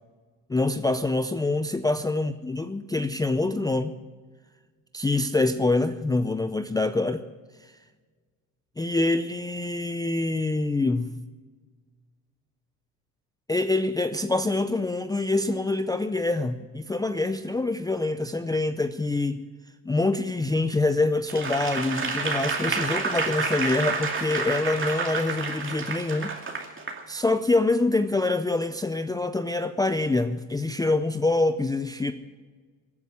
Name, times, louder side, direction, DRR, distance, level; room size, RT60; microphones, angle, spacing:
voice 1, 0.5-4.0 4.9-7.2 8.8-11.1 13.5-19.4 19.9-26.3 27.1-32.1, left 2 dB, 10° left, 9 dB, 0.5 m, -25 dB
Applause / Crowd, 21.3-27.0 27.5-27.7, right 4 dB, 30° right, 2.6 m, -29 dB
15.5 x 9.6 x 8.3 m, 1.4 s
supercardioid pair, 95°, 43 cm